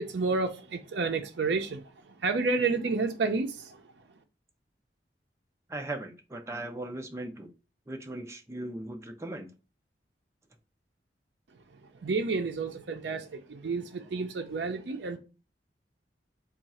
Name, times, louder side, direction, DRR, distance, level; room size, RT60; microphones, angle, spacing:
voice 1, 0.0-3.8 11.9-15.2, right 4 dB, 75° right, 0.5 m, -30 dB
voice 2, 5.7-7.5 7.9-9.5, right 1 dB, 15° right, 0.5 m, -38 dB
3.6 x 2.4 x 4.1 m
head